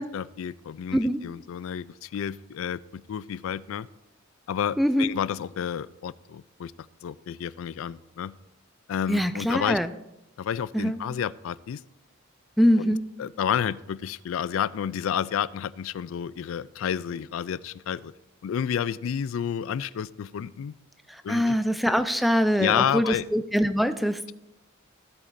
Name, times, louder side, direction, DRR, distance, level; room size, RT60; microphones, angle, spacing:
voice 1, 0.0-3.9 4.5-6.7 7.0-8.3 8.9-9.8 10.4-11.8 12.8-18.1 18.4-20.8 21.2-21.5 22.6-23.3, left 8 dB, 75° left, 19 dB, 0.3 m, -30 dB
voice 2, 4.8-5.1 9.1-9.9 10.7-11.0 12.6-13.0 21.3-24.3, equal, ahead, 9 dB, 0.4 m, -23 dB
15.5 x 8.3 x 2.6 m, 0.90 s
head